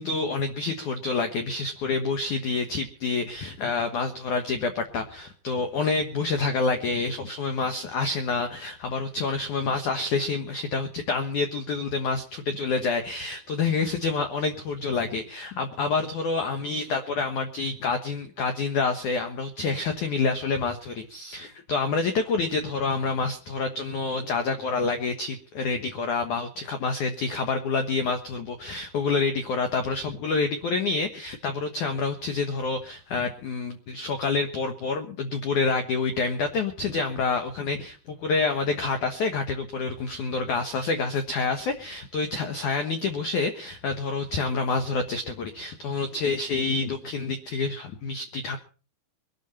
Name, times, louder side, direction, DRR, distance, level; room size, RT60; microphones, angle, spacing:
voice 1, 0.0-48.6, left 4 dB, 75° left, 7 dB, 1.8 m, -28 dB
23.0 x 12.5 x 4.3 m, 0.37 s
omnidirectional pair, 5.4 m